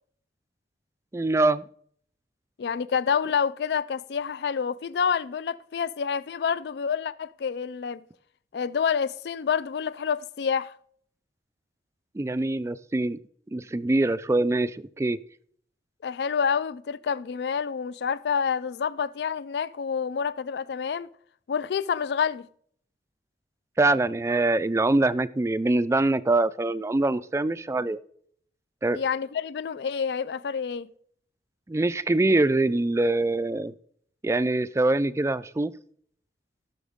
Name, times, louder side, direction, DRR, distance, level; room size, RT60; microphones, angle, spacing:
voice 1, 1.1-1.6 12.1-13.2 13.5-15.2 23.8-28.0 28.8-29.0 31.7-33.7 34.2-35.7, right 2 dB, 15° right, 0.3 m, -24 dB
voice 2, 2.6-8.0 8.5-10.7 16.0-21.1 21.5-22.5 28.9-30.9, left 6 dB, 65° left, 0.4 m, -28 dB
16.0 x 6.1 x 3.6 m
head